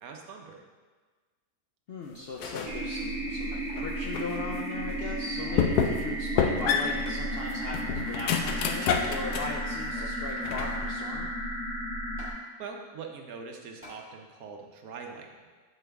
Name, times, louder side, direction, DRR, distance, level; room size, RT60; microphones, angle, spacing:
voice 1, 0.0-0.6 5.7-6.0 12.6-15.5, right 5 dB, 70° right, 2 dB, 1.1 m, -43 dB
voice 2, 1.9-3.5 3.8-11.3, left 3 dB, 70° left, -1 dB, 0.5 m, -38 dB
sound 1, 2.4-2.8 3.3-4.4 4.9-5.0 5.6-6.1 6.4-9.6 10.0-10.9, left 7 dB, 90° left, 1.1 m, -29 dB
sound 2, 2.6-12.3, right 1 dB, 55° right, 1.6 m, -33 dB
Sliding Metal Cup Hit Table at the End, 5.1-5.7 6.2-6.3 7.0-7.6 8.6-9.4 10.6-10.8 12.2-12.4 13.8-14.0 14.6-14.7, equal, 10° right, 1.7 m, -49 dB
7.9 x 4.6 x 3.4 m, 1.4 s
omnidirectional pair, 1.6 m